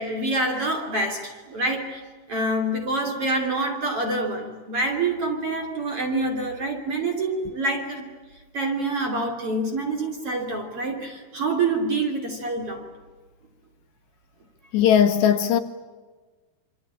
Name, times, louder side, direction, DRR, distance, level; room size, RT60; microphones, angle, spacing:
voice 1, 0.0-2.0 2.3-8.1 8.5-12.9, right 2 dB, 35° right, 3.1 m, -26 dB
voice 2, 14.7-15.6, left 9 dB, 75° left, 2.9 m, -18 dB
26.0 x 25.5 x 8.8 m
omnidirectional pair, 5.6 m